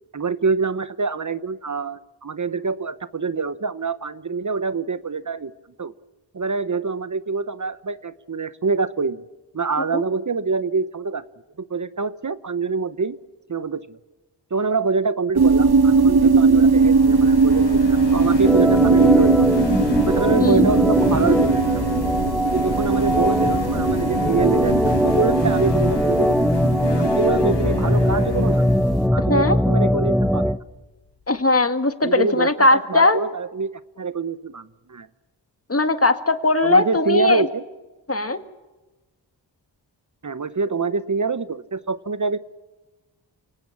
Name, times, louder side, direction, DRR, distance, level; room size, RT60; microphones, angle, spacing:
voice 1, 0.1-5.5 5.8-5.9 6.3-9.2 9.5-11.2 11.7-13.2 13.5-14.0 14.5-19.5 20.0-21.6 22.4-26.5 27.0-28.6 29.1-30.5 32.0-35.1 36.6-37.6 40.2-42.4, right 4 dB, 45° right, 15 dB, 0.9 m, -25 dB
sound 1, 15.4-28.8, right 4 dB, 60° right, 2.2 m, -19 dB
sound 2, 16.4-30.4, left 6 dB, 70° left, 1.2 m, -32 dB
Organ, 18.4-30.6, equal, ahead, 1.0 m, -21 dB
voice 2, 31.3-33.2 35.7-37.5 38.1-38.4, left 2 dB, 35° left, 9 dB, 1.9 m, -19 dB
29.0 x 18.0 x 7.3 m, 1.1 s
cardioid pair, 45°, 43 cm